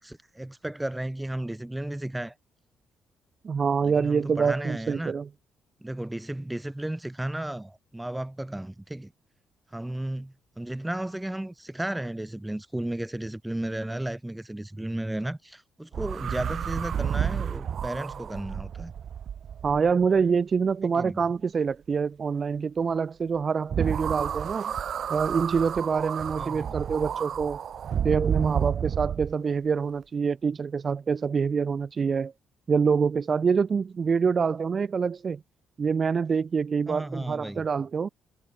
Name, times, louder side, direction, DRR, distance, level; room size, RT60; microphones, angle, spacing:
voice 1, 0.0-2.3 3.8-5.1 5.8-9.1 9.7-18.9 20.8-21.2 26.4-26.7 36.9-37.6, right 1 dB, 10° right, 3.1 m, -34 dB
voice 2, 3.4-5.3 19.6-24.7 25.1-27.6 28.0-32.3 32.7-35.4 35.8-38.1, right 5 dB, 40° right, 0.3 m, -26 dB
sound 1, 15.9-20.2 23.7-29.3, right 8 dB, 60° right, 1.4 m, -31 dB
cardioid pair, 90°, 0 cm